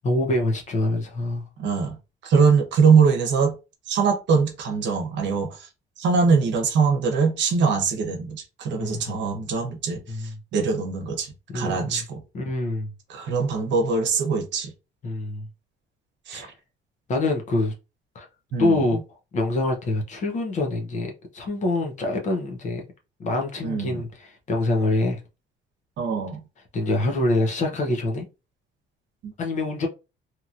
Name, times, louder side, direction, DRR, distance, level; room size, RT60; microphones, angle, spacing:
voice 1, 0.0-1.5 8.8-9.0 10.1-10.3 11.5-12.0 12.3-12.9 15.0-15.5 16.3-16.5 17.1-17.7 18.1-18.3 18.6-19.0 19.3-22.8 23.2-25.2 26.7-28.3 29.4-29.9, left 2 dB, 35° left, 0.7 m, -25 dB
voice 2, 1.6-2.0 2.2-3.5 3.9-5.7 6.0-12.2 13.1-14.7 16.3-16.5 18.5-18.8 23.6-24.0 26.0-26.4 29.2-29.3, right 5 dB, 65° right, 0.9 m, -22 dB
2.9 x 2.7 x 2.4 m
cardioid pair, 170°, 20 cm